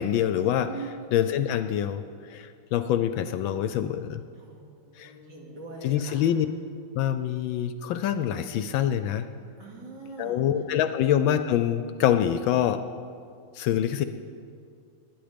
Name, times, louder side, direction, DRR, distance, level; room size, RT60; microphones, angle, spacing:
voice 1, 0.0-0.7 1.1-4.2 5.0-5.1 5.8-6.5 6.9-9.2 10.2-12.8 13.5-14.0, left 10 dB, 75° left, 10 dB, 1.2 m, -25 dB
voice 2, 0.7-1.1 4.4-6.2 9.6-10.4, right 3 dB, 55° right, -3 dB, 3.4 m, -42 dB
21.0 x 10.0 x 5.1 m, 2.4 s
omnidirectional pair, 2.3 m